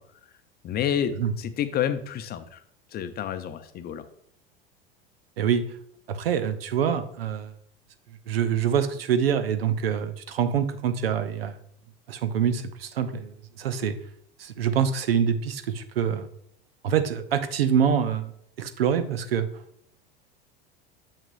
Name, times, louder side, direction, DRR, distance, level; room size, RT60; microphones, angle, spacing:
voice 1, 0.6-2.6 2.9-4.0, left 9 dB, 35° left, 10 dB, 0.6 m, -29 dB
voice 2, 6.1-7.5 8.3-11.6 12.1-14.0 14.4-16.3 16.8-18.3 18.6-19.5, right 8 dB, 85° right, 11 dB, 0.6 m, -25 dB
6.7 x 5.9 x 2.5 m, 0.70 s
hypercardioid pair, 85°, 29 cm